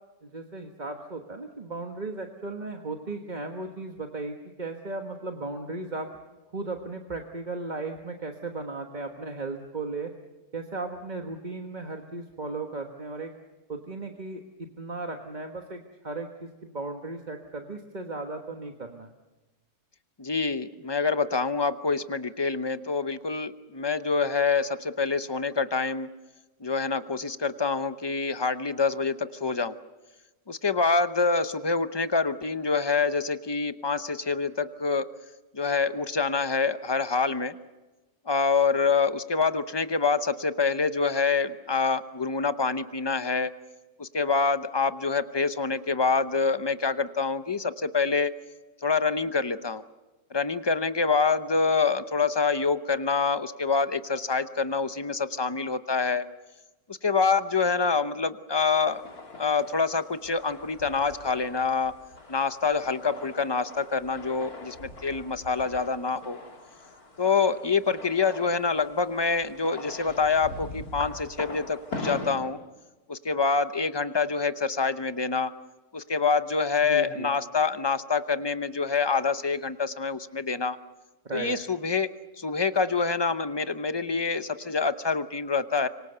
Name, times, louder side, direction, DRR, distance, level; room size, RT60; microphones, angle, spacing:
voice 1, 0.2-6.1 6.5-10.1 10.5-13.3 13.7-14.4 14.8-19.1 76.8-77.3 81.2-81.5, right 3 dB, 30° right, 3 dB, 1.4 m, -36 dB
voice 2, 20.2-26.1 26.6-29.7 30.5-35.1 35.5-37.5 38.3-43.5 44.0-48.3 48.8-49.8 50.3-56.2 56.9-59.0 59.4-61.9 62.3-66.4 67.2-72.6 73.1-75.5 75.9-80.8 81.3-82.1 82.4-85.9, left 4 dB, 30° left, 11 dB, 0.5 m, -26 dB
sound 1, 58.5-72.4, left 2 dB, 65° left, 3.5 m, -42 dB
26.0 x 24.0 x 6.8 m, 1.1 s
omnidirectional pair, 1.7 m